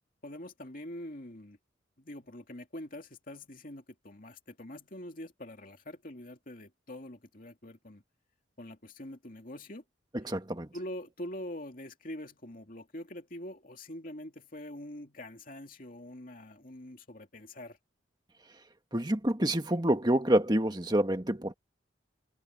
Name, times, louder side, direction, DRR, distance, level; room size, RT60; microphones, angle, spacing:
voice 1, 0.2-1.6 2.0-8.0 8.6-9.8 10.7-17.8, left 1 dB, 45° left, 2.5 m, -44 dB
voice 2, 10.1-10.7 18.9-21.5, right 1 dB, 20° right, 1.8 m, -27 dB
head